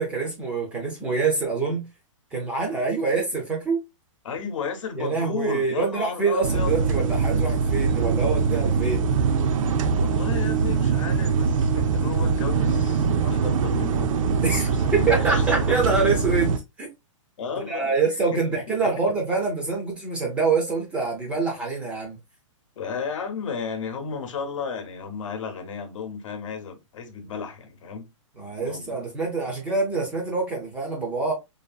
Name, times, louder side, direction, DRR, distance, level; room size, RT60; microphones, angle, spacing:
voice 1, 0.0-1.8 2.3-3.8 5.0-9.1 14.4-16.9 17.7-22.2 28.4-31.3, right 4 dB, 5° right, 0.3 m, -25 dB
voice 2, 4.2-6.8 9.9-14.2 14.5-15.9 17.4-17.9 18.3-18.6 22.8-28.1 28.6-29.0, left 6 dB, 70° left, 0.8 m, -33 dB
sound 1, 6.4-16.6, right 5 dB, 75° right, 0.4 m, -23 dB
2.7 x 2.5 x 2.2 m
hypercardioid pair, 165°, 17 cm